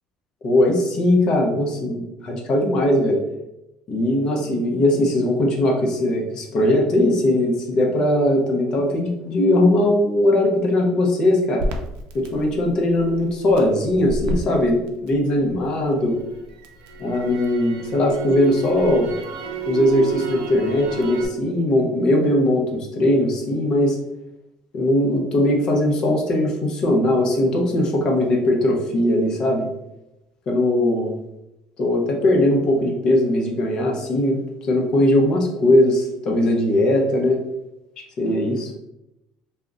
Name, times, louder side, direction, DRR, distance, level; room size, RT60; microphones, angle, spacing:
voice 1, 0.4-3.2 3.9-11.6 12.1-16.2 17.0-19.1 19.6-24.0 24.7-29.7 30.5-31.1 31.8-34.4 34.7-37.4 38.2-38.7, left 1 dB, 35° left, 0 dB, 0.6 m, -19 dB
Crackle, 11.6-15.7 16.1-21.3, right 3 dB, 85° right, 0.4 m, -29 dB
2.4 x 2.1 x 3.6 m, 0.89 s
cardioid pair, 175°, 2 cm